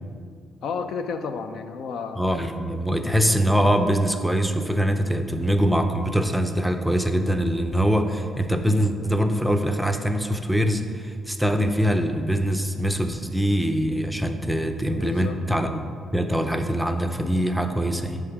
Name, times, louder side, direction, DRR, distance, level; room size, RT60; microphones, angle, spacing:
voice 1, 0.6-2.2 3.0-3.1 14.9-15.4, left 5 dB, 75° left, 8 dB, 0.4 m, -31 dB
voice 2, 2.2-15.7 16.1-18.2, equal, ahead, 6 dB, 0.5 m, -23 dB
7.3 x 3.5 x 5.9 m, 2.2 s
cardioid pair, 90°, 0 cm